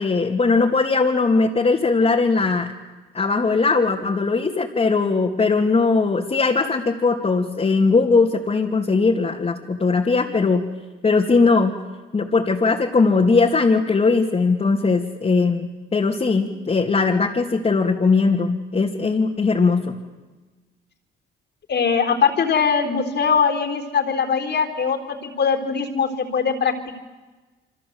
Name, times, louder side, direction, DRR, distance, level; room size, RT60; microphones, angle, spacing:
voice 1, 0.0-2.7 3.1-10.6 11.0-11.7 12.1-20.0, left 4 dB, 30° left, -1 dB, 2.8 m, -19 dB
voice 2, 21.7-26.7, left 6 dB, 55° left, 6 dB, 4.0 m, -21 dB
28.5 x 25.0 x 8.2 m, 1.2 s
cardioid pair, 90°, 20 cm